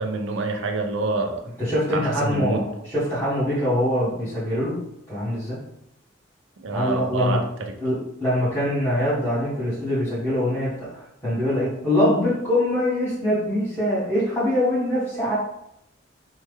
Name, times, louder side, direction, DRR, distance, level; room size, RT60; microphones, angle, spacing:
voice 1, 0.0-1.5 1.9-2.6 6.6-7.8, right 3 dB, 70° right, 4 dB, 0.5 m, -27 dB
voice 2, 1.6-4.8 5.1-5.6 6.7-7.4 7.8-15.3, left 1 dB, 10° left, -12 dB, 1.1 m, -23 dB
3.2 x 2.1 x 3.2 m, 0.79 s
head